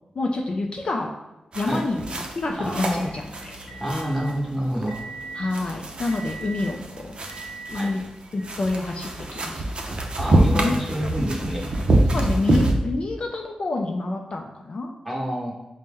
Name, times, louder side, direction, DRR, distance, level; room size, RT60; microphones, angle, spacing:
voice 1, 0.2-1.1 1.5-3.6 5.3-6.8 7.7-8.0 8.3-9.6 10.5-10.8 12.1-14.9, left 2 dB, 50° left, 1 dB, 0.4 m, -27 dB
sound 1, 1.5-12.7, right 1 dB, 50° right, 0.5 m, -26 dB
Motor vehicle (road) / Engine, 2.0-8.1, right 3 dB, 90° left, 0.8 m, -41 dB
voice 2, 2.5-3.0 3.8-5.0 7.7-7.9 10.2-11.7 15.0-15.5, equal, ahead, -3 dB, 1.0 m, -27 dB
4.2 x 2.1 x 3.5 m, 1.0 s
cardioid pair, 80°, 2 cm